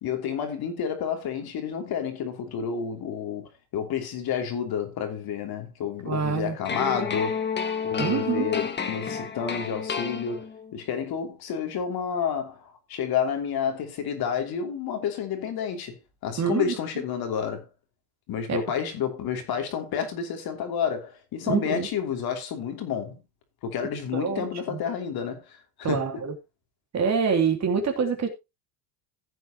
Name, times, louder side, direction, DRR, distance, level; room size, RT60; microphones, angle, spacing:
voice 1, 0.0-7.4 7.8-17.7 18.3-23.2 23.6-26.2, left 7 dB, 45° left, 2.9 m, -30 dB
voice 2, 6.0-6.5 8.0-8.5 16.4-16.8 18.5-18.6 21.5-21.9 24.1-24.4 24.7-24.8 25.8-26.3 26.9-28.3, right 6 dB, 35° right, 2.9 m, -25 dB
sound 1, 6.6-10.7, left 6 dB, 20° left, 1.6 m, -30 dB
15.5 x 8.0 x 2.9 m
supercardioid pair, 125°, 49 cm